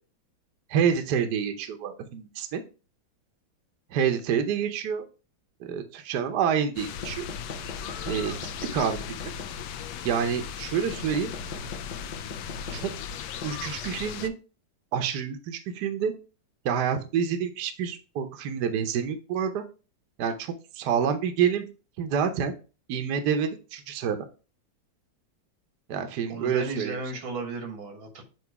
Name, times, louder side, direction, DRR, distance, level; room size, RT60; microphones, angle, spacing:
voice 1, 0.7-2.6 3.9-5.0 5.6-7.3 8.1-8.4 8.7-9.0 10.0-11.3 12.7-12.9 13.4-14.3 14.9-16.1 16.6-19.6 20.2-21.6 22.0-22.5 22.9-24.2 25.9-27.0, right 7 dB, 65° right, 7 dB, 1.3 m, -27 dB
sound 1, 6.8-14.3, left 9 dB, 70° left, 1.1 m, -37 dB
sound 2, 7.0-10.0 10.9-14.2, left 3 dB, 45° left, 0.6 m, -41 dB
voice 2, 26.3-28.2, right 3 dB, 90° right, 4 dB, 2.2 m, -34 dB
7.9 x 2.9 x 4.6 m, 0.35 s
omnidirectional pair, 2.1 m